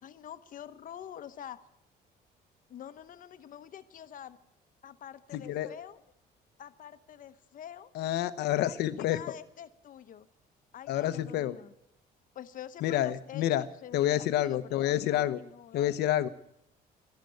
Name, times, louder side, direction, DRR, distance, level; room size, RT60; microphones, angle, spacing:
voice 1, 0.0-1.6 2.7-4.4 4.8-6.0 6.6-7.9 8.6-8.7 9.1-10.3 10.7-11.7 12.3-15.9, left 10 dB, 55° left, 11 dB, 1.0 m, -46 dB
voice 2, 5.3-5.7 7.9-9.3 10.9-11.6 12.8-13.6 13.9-15.4 15.7-16.3, left 12 dB, 80° left, 13 dB, 1.0 m, -28 dB
13.0 x 12.0 x 9.4 m, 0.78 s
cardioid pair, 110°, 17 cm